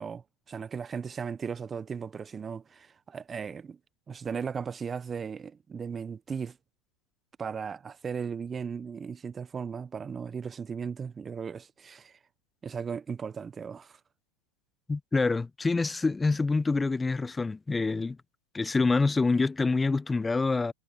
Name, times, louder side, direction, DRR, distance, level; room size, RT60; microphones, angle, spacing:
voice 1, 0.0-3.8 4.1-6.6 7.4-12.2 12.6-14.0, right 6 dB, 20° right, 0.8 m, -37 dB
voice 2, 14.9-18.2 18.5-20.7, left 3 dB, 10° left, 0.8 m, -26 dB
hypercardioid pair, 100°, 0 cm